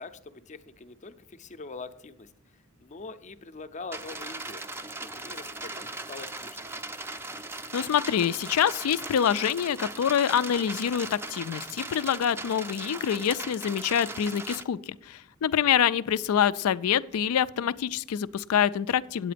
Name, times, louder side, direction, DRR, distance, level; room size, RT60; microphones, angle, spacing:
voice 1, 0.0-4.6 5.0-6.7 15.6-15.9, left 3 dB, 35° left, 10 dB, 0.5 m, -44 dB
sound 1, 3.9-14.6, right 2 dB, 10° right, 0.4 m, -39 dB
voice 2, 7.7-19.3, left 8 dB, 90° left, 17 dB, 0.4 m, -26 dB
8.7 x 8.4 x 5.0 m, 0.79 s
head